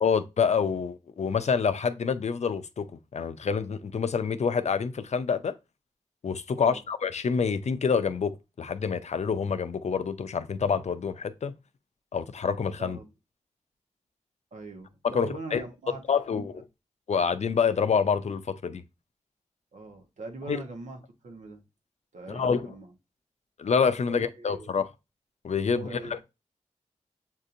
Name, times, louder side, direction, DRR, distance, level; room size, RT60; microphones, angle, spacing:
voice 1, 0.0-5.5 6.2-11.5 12.1-13.0 15.0-15.6 16.1-16.5 17.1-18.8 20.5-20.6 22.3-22.7 23.6-24.9 25.4-26.2, left 6 dB, 65° left, 0.5 m, -27 dB
voice 2, 6.5-6.8 12.8-13.1 14.5-16.0 16.3-16.5 19.7-21.6 22.1-22.9 24.1-24.8 25.7-26.2, right 3 dB, 90° right, 1.0 m, -42 dB
7.2 x 2.7 x 2.5 m
cardioid pair, 45°, 12 cm